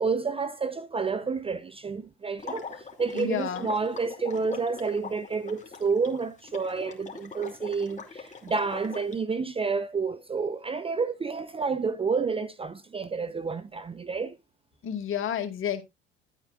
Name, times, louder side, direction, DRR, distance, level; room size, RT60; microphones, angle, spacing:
voice 1, 0.0-2.7 3.0-14.4, right 4 dB, 20° right, 0.7 m, -29 dB
Water / Liquid, 2.4-9.2, left 4 dB, 25° left, 2.6 m, -42 dB
voice 2, 3.1-3.7 14.8-15.8, left 9 dB, 40° left, 2.1 m, -30 dB
11.5 x 8.8 x 2.4 m
hypercardioid pair, 75°, 32 cm